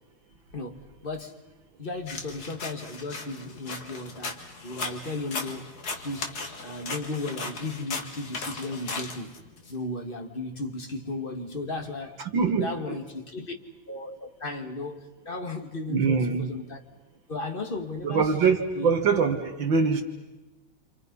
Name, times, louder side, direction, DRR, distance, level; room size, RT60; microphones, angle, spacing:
voice 1, 0.5-1.4 1.8-5.7 6.0-6.3 6.6-9.3 9.7-13.5 13.9-16.8 17.3-18.3 18.7-18.9, left 2 dB, 25° left, 4 dB, 2.0 m, -35 dB
sound 1, 2.1-9.7, left 3 dB, 50° left, 2.3 m, -37 dB
voice 2, 12.3-13.0 15.9-16.5 18.0-20.0, right 5 dB, 65° right, 5 dB, 2.1 m, -23 dB
28.5 x 28.0 x 5.4 m, 1.1 s
omnidirectional pair, 2.3 m